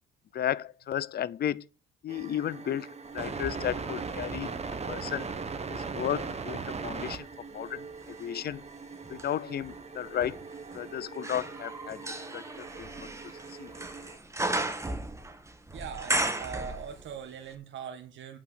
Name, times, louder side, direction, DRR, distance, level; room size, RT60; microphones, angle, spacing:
voice 1, 0.3-1.7 2.0-2.9 3.1-4.5 4.9-5.3 5.7-7.3 7.5-7.8 8.2-8.6 9.1-10.4 10.7-12.0 12.3-13.1 13.6-13.7, left 10 dB, 50° left, 0.6 m, -33 dB
sound 1, 2.1-14.2, right 5 dB, 35° right, 1.5 m, -39 dB
sound 2, 3.2-5.4 5.9-17.3 17.5-17.6, right 2 dB, 15° right, 1.7 m, -37 dB
voice 2, 15.7-18.4, right 7 dB, 70° right, 1.7 m, -41 dB
8.4 x 6.1 x 7.6 m
cardioid pair, 90°, 20 cm